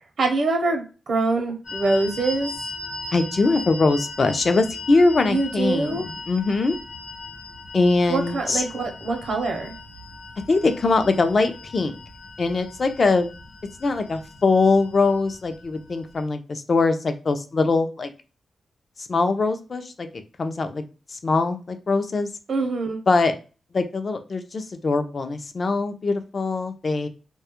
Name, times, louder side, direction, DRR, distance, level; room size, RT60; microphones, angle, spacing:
voice 1, 0.2-2.5 5.3-6.1 8.1-9.7 22.5-23.0, right 3 dB, 70° right, 3 dB, 0.6 m, -24 dB
sound 1, 1.6-16.2, left 2 dB, 80° left, 0.9 m, -39 dB
voice 2, 3.1-6.8 7.7-8.6 10.5-11.9 12.4-13.3 13.8-18.1 19.0-20.8 21.1-22.3 23.1-23.3 23.7-27.1, left 3 dB, 45° left, 8 dB, 0.4 m, -22 dB
2.2 x 2.0 x 2.8 m, 0.33 s
wide cardioid pair, 105°, 0 cm